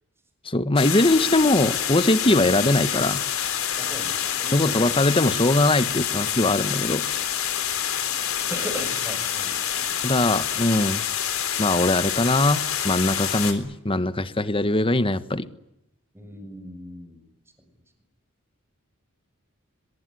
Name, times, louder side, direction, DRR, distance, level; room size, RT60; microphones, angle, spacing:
voice 1, 0.4-3.2 4.5-7.0 10.0-11.0 11.6-15.5, left 2 dB, 25° left, 13 dB, 1.4 m, -21 dB
sound 1, 0.8-13.5, left 9 dB, 75° left, 3.9 m, -27 dB
voice 2, 3.8-4.9 8.5-9.9 16.1-17.3, equal, 10° right, 6 dB, 6.6 m, -38 dB
23.5 x 22.5 x 9.8 m, 0.83 s
head